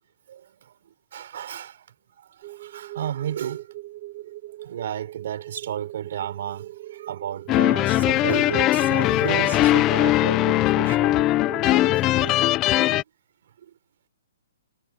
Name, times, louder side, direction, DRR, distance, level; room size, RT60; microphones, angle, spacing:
voice 1, 0.3-1.9 2.2-3.7 4.2-4.3 4.6-11.2 11.7-12.0 12.7-13.0 13.6-13.7, right 10 dB, 50° right, 6.1 m, -33 dB
sound 1, 2.4-12.5, right 16 dB, 30° right, 3.0 m, -40 dB
sound 2, 7.5-13.0, left 16 dB, 20° left, 0.8 m, -20 dB
hypercardioid pair, 165°, 0 cm